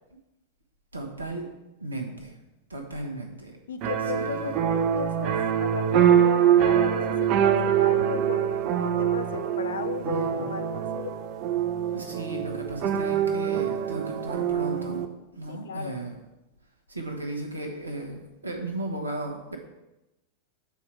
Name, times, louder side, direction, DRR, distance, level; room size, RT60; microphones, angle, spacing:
voice 1, 0.9-1.5 1.8-2.4 2.7-3.6 4.2-4.6 10.0-10.6 11.9-15.1 15.3-16.2 16.9-19.6, right 2 dB, 75° right, 3 dB, 1.1 m, -35 dB
voice 2, 3.7-11.1 15.5-16.0, left 7 dB, 65° left, 9 dB, 0.5 m, -35 dB
sound 1, 3.8-15.1, right 9 dB, 40° right, 0.5 m, -24 dB
7.1 x 4.4 x 4.8 m, 0.97 s
figure-of-eight pair, 90°, 0 cm